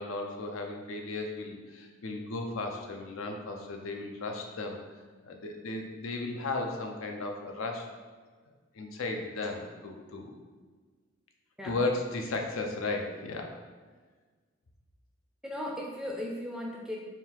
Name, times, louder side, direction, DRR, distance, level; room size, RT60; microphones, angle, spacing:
voice 1, 0.0-4.8 5.2-7.9 8.7-10.3 11.6-13.6, left 2 dB, 85° left, 3 dB, 0.5 m, -35 dB
voice 2, 15.4-17.0, left 1 dB, 5° right, -1 dB, 0.4 m, -37 dB
3.7 x 2.4 x 4.4 m, 1.4 s
head